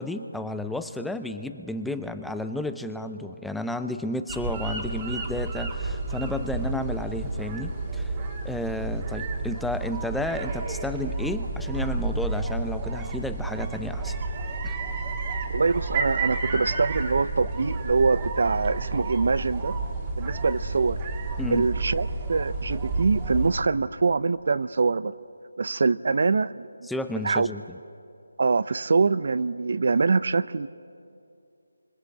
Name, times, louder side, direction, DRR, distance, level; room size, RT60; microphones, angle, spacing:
voice 1, 0.0-8.1 8.4-14.2 14.6-14.7 21.4-21.7 26.8-27.6, left 1 dB, ahead, 9 dB, 0.6 m, -32 dB
sound 1, 4.3-23.5, right 3 dB, 25° right, 2.2 m, -31 dB
voice 2, 15.5-19.7 20.2-21.0 21.5-25.1 25.6-26.7 27.2-27.5 28.4-30.7, right 4 dB, 55° right, 17 dB, 0.6 m, -24 dB
28.0 x 26.0 x 7.9 m, 2.6 s
figure-of-eight pair, 165°, 0 cm